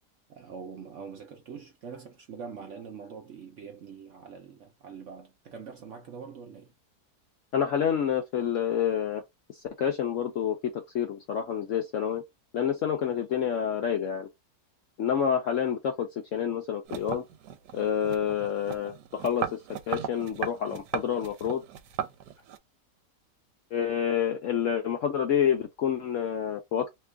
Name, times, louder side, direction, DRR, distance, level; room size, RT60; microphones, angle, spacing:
voice 1, 0.3-6.7, right 6 dB, 60° right, 0.8 m, -44 dB
voice 2, 7.5-9.2 9.5-12.2 12.5-14.3 15.0-17.2 17.7-19.6 19.9-21.6 23.7-26.9, left 8 dB, 65° left, 0.8 m, -28 dB
sound 1, 16.9-22.6, right 9 dB, 80° right, 1.2 m, -37 dB
2.9 x 2.4 x 3.3 m
omnidirectional pair, 1.8 m